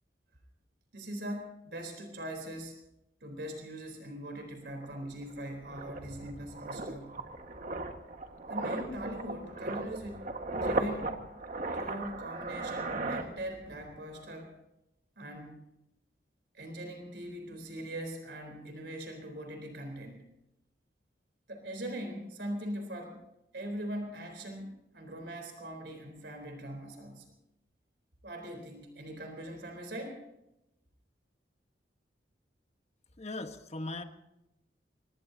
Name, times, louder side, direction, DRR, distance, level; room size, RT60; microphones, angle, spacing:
voice 1, 0.9-2.8 3.2-7.2 8.5-10.3 10.6-11.2 11.7-14.5 15.2-15.6 16.5-20.3 21.5-23.2 23.5-27.3 28.2-30.2, right 1 dB, 70° right, 4 dB, 3.8 m, -41 dB
sound 1, 4.4-4.5 4.8-13.9 14.1-14.4, right 2 dB, 50° right, 1.6 m, -37 dB
voice 2, 33.2-34.0, left 2 dB, 40° left, 7 dB, 1.3 m, -38 dB
25.0 x 20.5 x 2.8 m, 0.88 s
head